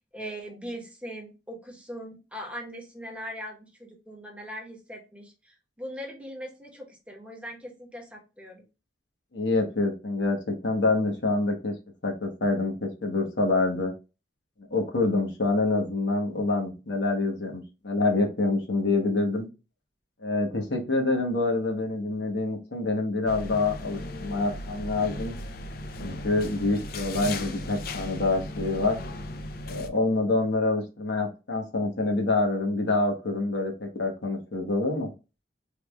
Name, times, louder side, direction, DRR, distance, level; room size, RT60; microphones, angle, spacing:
voice 1, 0.1-8.6, equal, 5° right, 0 dB, 0.9 m, -40 dB
voice 2, 9.3-11.7 12.0-13.9 14.7-19.5 20.2-25.3 26.0-29.0 29.7-35.1, left 2 dB, 85° left, 2 dB, 1.1 m, -26 dB
sound 1, 23.3-29.9, left 2 dB, 55° left, 0.4 m, -36 dB
3.4 x 2.3 x 3.1 m, 0.29 s
head